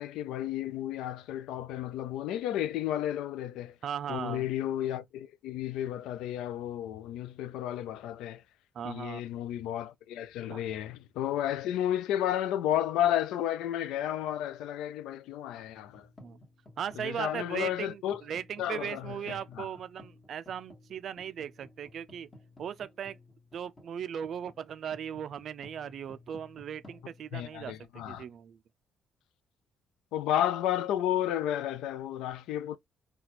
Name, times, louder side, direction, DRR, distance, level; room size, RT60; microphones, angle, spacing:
voice 1, 0.0-3.8 4.1-8.4 8.8-16.1 17.0-18.2 18.6-19.7 27.3-28.2 30.1-32.8, left 11 dB, 90° left, 0.3 m, -32 dB
voice 2, 3.8-4.5 8.7-9.2 10.5-10.6 16.2-16.4 16.8-22.3 22.6-23.2 23.5-28.6, right 8 dB, 60° right, 0.3 m, -38 dB
sound 1, 15.7-28.1, left 2 dB, 25° left, 1.2 m, -56 dB
4.0 x 2.3 x 2.9 m
cardioid pair, 100°, 0 cm